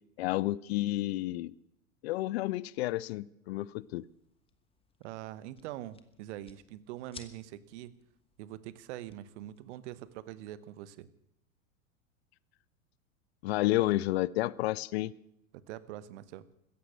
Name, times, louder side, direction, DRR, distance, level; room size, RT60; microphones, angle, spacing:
voice 1, 0.2-1.5 2.0-4.1 13.4-15.1, left 17 dB, 50° left, 23 dB, 0.5 m, -30 dB
sound 1, 3.5-10.2, left 4 dB, 15° left, 1.3 m, -58 dB
voice 2, 5.0-7.9 8.4-11.1 15.5-16.4, right 13 dB, 55° right, 17 dB, 1.1 m, -44 dB
16.0 x 14.0 x 6.4 m, 0.82 s
figure-of-eight pair, 95°, 43 cm